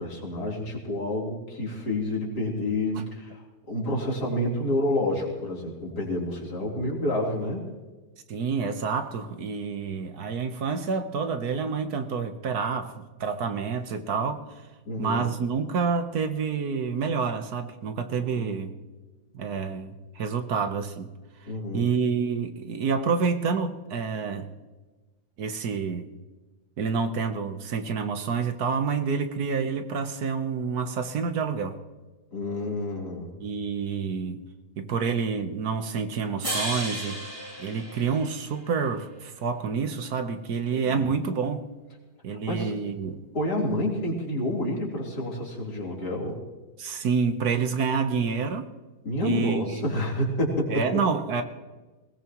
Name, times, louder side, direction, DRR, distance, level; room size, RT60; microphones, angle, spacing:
voice 1, 0.0-7.6 14.9-15.3 18.2-18.5 21.5-21.9 32.3-33.3 40.7-41.1 42.3-42.7 43.3-46.4 49.0-50.9, left 1 dB, 80° left, -3 dB, 4.3 m, -29 dB
voice 2, 8.3-14.6 15.0-18.7 19.3-21.1 21.7-24.5 25.4-26.1 26.8-31.8 33.4-34.5 34.8-37.3 37.6-41.7 42.2-43.2 46.8-48.7 49.2-49.9 50.7-51.4, right 5 dB, 70° right, 8 dB, 1.6 m, -28 dB
sound 1, 36.4-38.8, right 1 dB, 20° right, 3.1 m, -34 dB
21.0 x 19.5 x 3.1 m, 1.2 s
omnidirectional pair, 1.7 m